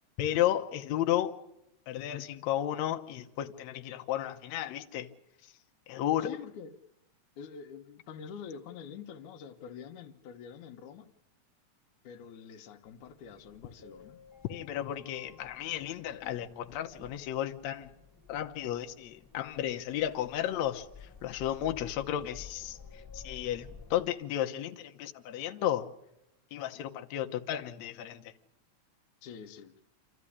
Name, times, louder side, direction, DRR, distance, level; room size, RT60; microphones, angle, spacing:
voice 1, 0.2-1.4 1.9-5.1 5.4-5.5 5.9-6.3 14.5-17.9 18.3-25.9 26.5-28.3, left 12 dB, 70° left, 2.1 m, -33 dB
voice 2, 6.2-6.7 7.4-11.1 12.0-14.2 29.2-29.8, left 7 dB, 85° left, 2.5 m, -46 dB
sound 1, 12.8-24.1, left 5 dB, 5° left, 3.8 m, -53 dB
27.5 x 14.0 x 9.9 m
omnidirectional pair, 3.4 m